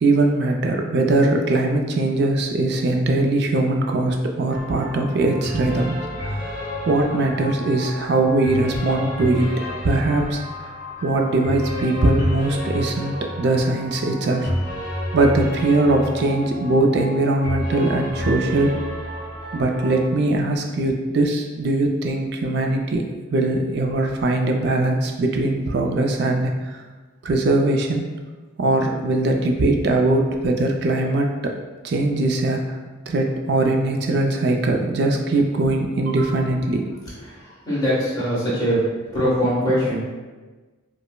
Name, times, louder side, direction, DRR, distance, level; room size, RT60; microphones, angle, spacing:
voice 1, 0.0-6.5 6.9-9.5 9.8-10.4 10.7-10.8 11.0-14.5 15.1-18.8 19.5-26.8 27.2-28.0 28.6-31.5 31.8-32.8 33.1-36.9, right 2 dB, 55° right, 2 dB, 0.3 m, -21 dB
sound 1, 4.5-20.0, equal, 40° left, 1.1 m, -30 dB
voice 2, 37.2-38.8 39.1-40.1, equal, 20° left, -9 dB, 1.2 m, -22 dB
5.1 x 2.0 x 2.2 m, 1.3 s
head